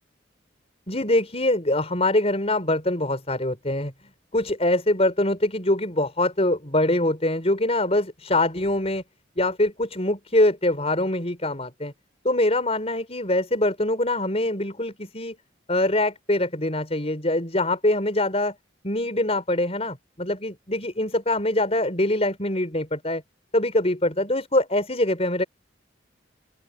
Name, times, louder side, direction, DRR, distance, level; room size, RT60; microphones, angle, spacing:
voice 1, 0.9-3.9 4.3-9.0 9.4-11.9 12.2-15.4 15.7-18.5 18.8-23.2 23.5-25.4, left 1 dB, 35° left, 5.1 m, -23 dB
open air
head